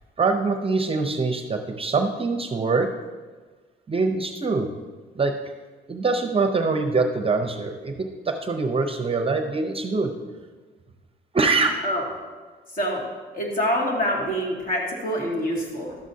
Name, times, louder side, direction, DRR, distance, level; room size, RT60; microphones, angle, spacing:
voice 1, 0.2-2.9 3.9-4.7 5.1-5.3 5.9-10.2 11.3-11.8, right 3 dB, 30° right, 5 dB, 0.7 m, -24 dB
voice 2, 13.3-16.0, equal, 45° left, -3 dB, 2.3 m, -25 dB
12.0 x 7.3 x 2.8 m, 1.4 s
cardioid pair, 90°, 20 cm